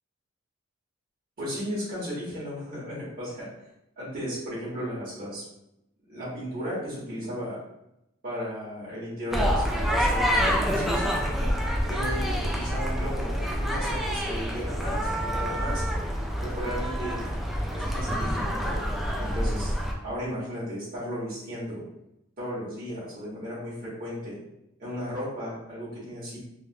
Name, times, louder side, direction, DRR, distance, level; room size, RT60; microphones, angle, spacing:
voice 1, 1.4-3.4 4.0-5.4 6.1-7.6 8.2-11.0 11.8-15.8 16.4-17.3 17.7-18.7 19.2-19.7 20.0-21.8 22.4-24.4 24.8-26.4, equal, 45° right, -10 dB, 1.4 m, -35 dB
sound 1, 9.3-19.9, equal, ahead, 0.4 m, -27 dB
3.4 x 2.4 x 2.5 m, 0.84 s
head